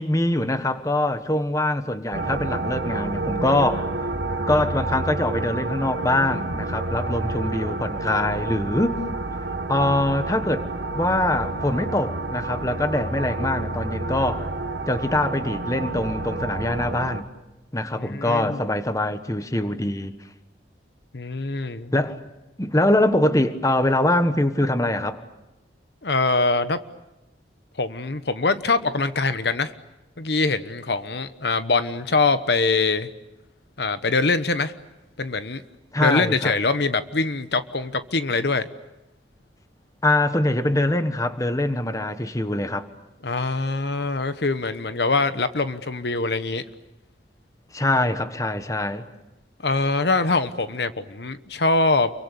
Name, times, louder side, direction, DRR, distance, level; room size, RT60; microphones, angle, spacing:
voice 1, 0.0-3.9 4.5-8.9 9.7-10.6 10.9-14.5 14.9-17.3 17.7-20.1 21.9-22.2 22.6-25.2 35.9-36.5 40.0-42.9 47.7-49.1, left 1 dB, 20° left, 1.3 m, -23 dB
sound 1, 2.1-17.2, right 2 dB, 70° right, 1.7 m, -29 dB
voice 2, 18.0-18.7 21.1-21.9 26.0-26.8 27.8-29.7 30.2-33.1 33.8-34.7 35.2-35.6 36.0-38.7 43.2-46.6 49.6-52.1, left 3 dB, 65° left, 1.1 m, -23 dB
29.0 x 23.5 x 8.4 m
head